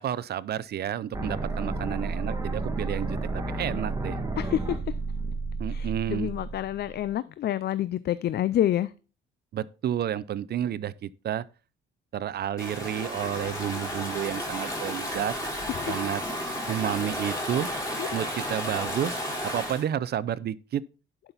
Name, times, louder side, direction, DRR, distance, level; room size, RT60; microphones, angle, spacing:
voice 1, 0.0-4.2 5.6-6.3 9.5-11.4 12.1-15.4 15.9-16.2 16.7-17.7 18.1-20.8, right 10 dB, 55° right, 0.5 m, -31 dB
sound 1, 1.1-7.1, right 3 dB, 15° right, 1.9 m, -31 dB
voice 2, 4.4-4.8 5.7-8.9 15.7-16.0 18.0-18.1, left 12 dB, 55° left, 0.4 m, -28 dB
Stream / Ocean, 12.6-19.8, equal, 15° left, 4.9 m, -33 dB
11.0 x 5.8 x 4.0 m
cardioid pair, 90°, 20 cm